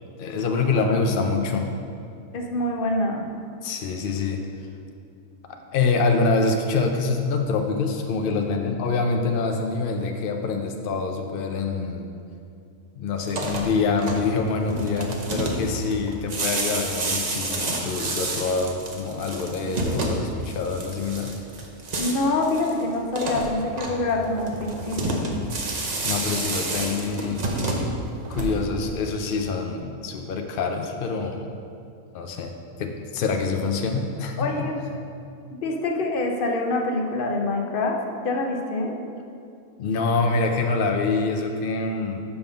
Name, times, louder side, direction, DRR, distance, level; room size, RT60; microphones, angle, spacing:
voice 1, 0.2-1.7 3.6-4.4 5.7-12.1 13.0-21.3 26.0-27.5 28.3-31.5 32.1-32.5 32.8-34.7 39.8-42.2, left 4 dB, 85° left, 3 dB, 0.4 m, -25 dB
voice 2, 2.3-3.3 22.0-25.3 34.4-34.8 35.5-38.0 38.2-38.9, left 2 dB, 50° left, 1 dB, 0.7 m, -25 dB
sound 1, 13.2-28.9, right 2 dB, 40° right, 0.6 m, -30 dB
5.6 x 5.3 x 5.5 m, 2.5 s
omnidirectional pair, 1.6 m